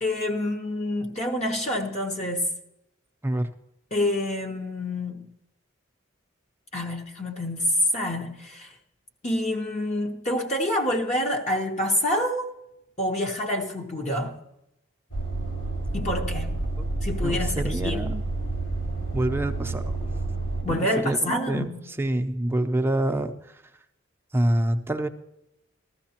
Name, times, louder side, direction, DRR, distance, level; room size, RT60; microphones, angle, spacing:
voice 1, 0.0-2.5 3.9-5.3 6.7-8.7 9.2-12.5 13.0-14.4 15.9-16.5 17.0-18.1 20.6-21.8, left 1 dB, 35° left, 1.0 m, -27 dB
sound 1, 15.1-20.6, right 2 dB, 75° left, 4.6 m, -29 dB
voice 2, 17.2-18.2 19.1-20.0 20.7-23.6 24.3-25.1, right 1 dB, 10° right, 0.6 m, -27 dB
15.5 x 13.0 x 2.9 m
head